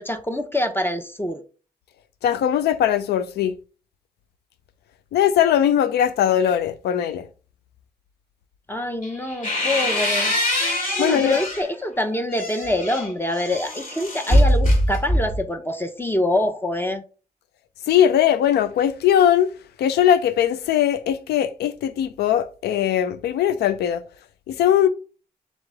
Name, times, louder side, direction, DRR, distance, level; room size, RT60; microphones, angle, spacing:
voice 1, 0.0-1.4 8.7-10.3 11.0-17.0, left 1 dB, 15° left, 0.7 m, -25 dB
voice 2, 2.2-3.5 5.1-7.3 11.0-11.4 17.9-19.5 19.8-24.0 24.5-24.9, left 10 dB, 90° left, 0.4 m, -20 dB
sound 1, 9.0-11.7 12.1-15.5, equal, 60° left, 2.0 m, -22 dB
4.1 x 3.1 x 3.4 m
supercardioid pair, 40°, 16 cm